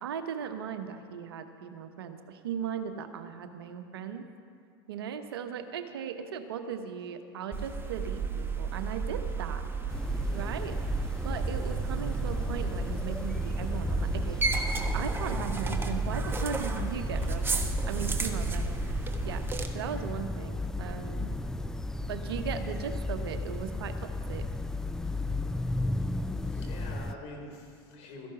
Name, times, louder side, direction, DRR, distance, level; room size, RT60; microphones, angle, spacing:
voice 1, 0.0-4.3 4.9-9.6 10.3-10.8 11.2-18.7 19.2-19.4 19.7-21.3 22.0-24.5, right 7 dB, 80° right, 8 dB, 1.1 m, -38 dB
sound 1, 7.5-19.7, right 5 dB, 20° right, 1.2 m, -33 dB
sound 2, 9.9-27.1, left 2 dB, 5° left, 0.4 m, -34 dB
voice 2, 12.2-12.7 24.6-25.4 26.4-28.3, left 2 dB, 55° left, 1 dB, 3.7 m, -47 dB
14.0 x 11.0 x 6.0 m, 2.3 s
hypercardioid pair, 90°, 13 cm